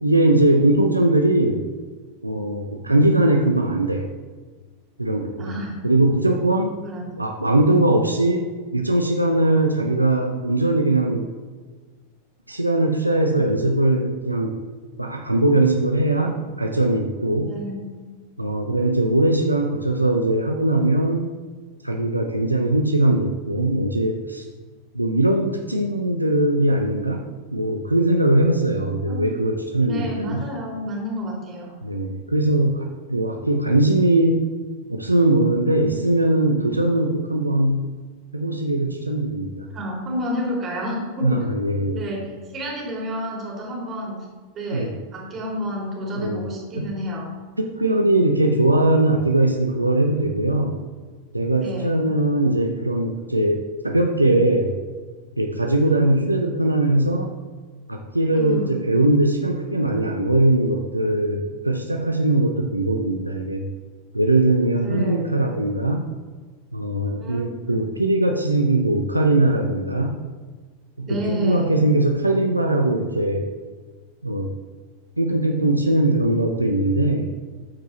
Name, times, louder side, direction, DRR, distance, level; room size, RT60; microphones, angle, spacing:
voice 1, 0.0-1.6 2.2-4.1 5.0-5.5 5.8-6.8 7.2-8.5 8.7-11.3 12.5-14.5 15.0-17.5 18.4-21.3 21.8-24.5 24.9-27.2 27.5-30.4 31.8-34.5 34.9-37.9 38.3-39.7 41.2-42.0 44.7-44.9 46.1-46.4 46.8-46.9 47.6-50.8 51.3-54.8 55.4-57.3 57.9-63.6 64.1-66.1 66.7-70.2 71.0-73.5 74.2-74.5 75.2-77.3, right 1 dB, 85° right, 3 dB, 0.5 m, -20 dB
voice 2, 5.4-5.8 6.8-7.2 17.5-18.0 29.1-29.3 29.8-31.7 39.7-41.4 41.9-44.3 44.5-47.3 51.6-52.0 58.4-58.8 64.8-65.3 67.2-67.4 67.7-67.8 71.1-71.9, equal, 25° right, -3 dB, 2.5 m, -30 dB
13.5 x 4.6 x 3.0 m, 1.4 s
figure-of-eight pair, 90°, 0 cm